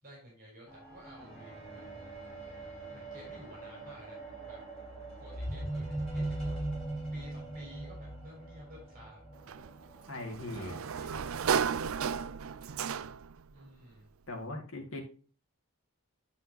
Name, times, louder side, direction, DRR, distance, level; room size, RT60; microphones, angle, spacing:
voice 1, 0.0-2.0 2.4-4.6 5.0-9.2 10.5-11.6 13.5-14.1, equal, 40° right, -2 dB, 3.9 m, -53 dB
sound 1, 0.7-10.2 11.0-11.1, right 1 dB, 5° left, 4.5 m, -40 dB
Sliding door, 9.5-13.4, right 7 dB, 70° right, 0.4 m, -34 dB
voice 2, 10.1-10.7 14.3-15.0, left 2 dB, 65° left, 1 dB, 2.1 m, -39 dB
10.0 x 5.5 x 2.9 m, 0.37 s
head